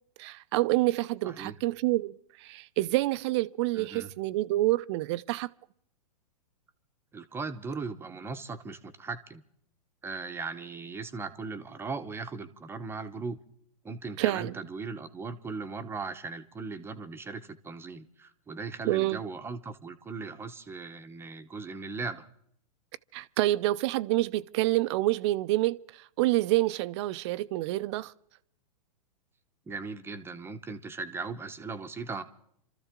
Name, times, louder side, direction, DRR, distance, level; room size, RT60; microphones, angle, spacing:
voice 1, 0.2-5.5 14.2-14.5 18.9-19.2 23.1-28.1, right 18 dB, 45° right, 0.6 m, -27 dB
voice 2, 1.2-1.6 3.7-4.1 7.1-9.4 10.0-13.4 13.8-22.3 29.7-32.2, right 4 dB, 10° right, 0.9 m, -38 dB
27.5 x 13.5 x 3.7 m
hypercardioid pair, 125°, 21 cm